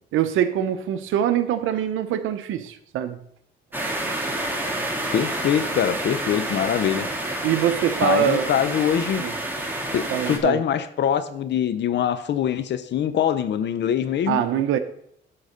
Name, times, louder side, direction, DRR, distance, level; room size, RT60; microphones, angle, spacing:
voice 1, 0.1-3.2 7.4-8.5 9.2-9.3 10.1-10.6 14.3-14.8, right 10 dB, 85° right, 10 dB, 0.8 m, -23 dB
sound 1, 3.7-10.4, right 1 dB, 10° right, 2.1 m, -29 dB
voice 2, 5.1-7.1 8.0-9.2 9.9-14.4, left 9 dB, 60° left, 12 dB, 0.7 m, -23 dB
11.0 x 4.0 x 6.6 m, 0.72 s
cardioid pair, 90°, 20 cm